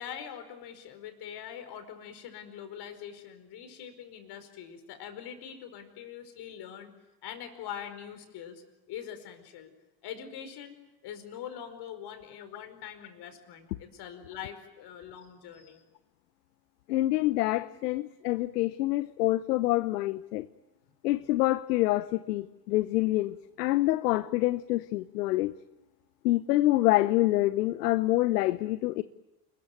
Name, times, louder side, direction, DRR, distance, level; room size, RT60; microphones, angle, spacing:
voice 1, 0.0-6.9 7.2-9.7 10.0-10.8 11.0-15.8 17.6-17.7, left 9 dB, 50° left, 5.0 m, -43 dB
voice 2, 16.9-20.5 21.0-25.5 26.2-29.0, left 17 dB, 70° left, 0.9 m, -26 dB
29.0 x 21.5 x 9.3 m
hypercardioid pair, 75°, 50 cm